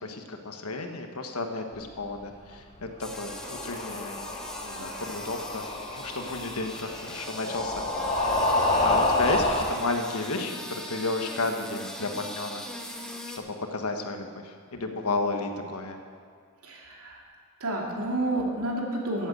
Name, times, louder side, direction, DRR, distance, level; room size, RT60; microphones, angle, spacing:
voice 1, 0.0-4.3 4.6-8.5 8.8-12.6 13.4-16.0, left 3 dB, 75° left, 5 dB, 1.4 m, -33 dB
sound 1, 3.0-9.7, left 2 dB, 30° left, 1.7 m, -28 dB
sound 2, 3.0-13.4, left 1 dB, 5° left, 1.1 m, -41 dB
voice 2, 16.6-17.2 17.6-19.3, right 1 dB, 80° right, -1 dB, 2.6 m, -30 dB
15.0 x 8.1 x 7.8 m, 2.1 s
head